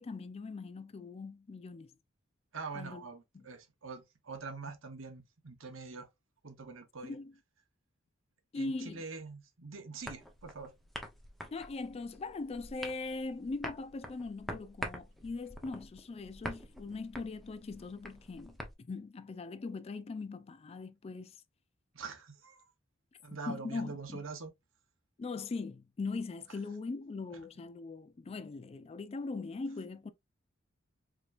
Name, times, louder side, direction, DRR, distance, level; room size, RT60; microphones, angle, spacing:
voice 1, 0.0-1.9 2.7-3.0 3.3-3.5 7.0-7.3 8.5-9.0 11.5-21.4 23.5-24.2 25.2-30.1, left 3 dB, 30° left, 0.3 m, -40 dB
voice 2, 2.5-6.1 6.4-7.2 8.6-10.7 21.9-22.6 23.2-24.5, right 4 dB, 70° right, 1.0 m, -44 dB
sound 1, 10.0-18.7, equal, ahead, 0.8 m, -46 dB
4.8 x 3.0 x 2.4 m
head